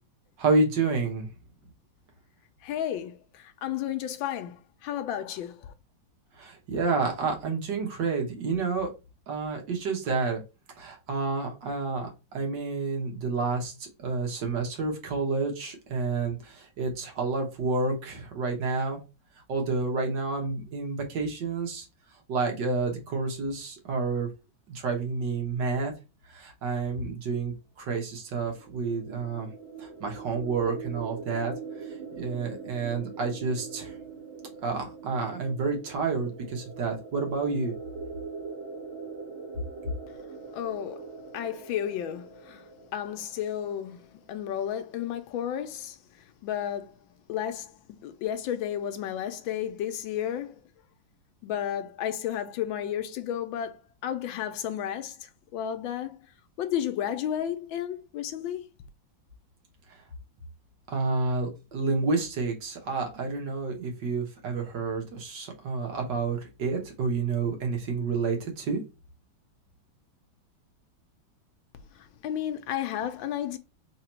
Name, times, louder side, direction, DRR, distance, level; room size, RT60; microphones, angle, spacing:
voice 1, 0.4-1.3 6.4-8.9 9.3-10.4 10.8-19.0 19.5-21.9 22.3-24.3 24.7-25.9 26.3-29.5 29.8-31.5 32.2-33.9 34.6-37.7 60.9-68.8, right 4 dB, 65° right, 1.8 m, -29 dB
voice 2, 2.6-5.7 40.5-42.6 42.9-46.0 46.4-46.9 47.3-50.6 51.4-56.2 56.6-58.7 72.0-73.6, left 10 dB, 85° left, 1.4 m, -32 dB
sound 1, 28.4-44.1, right 5 dB, 80° right, 1.8 m, -42 dB
3.9 x 2.9 x 4.3 m
omnidirectional pair, 2.1 m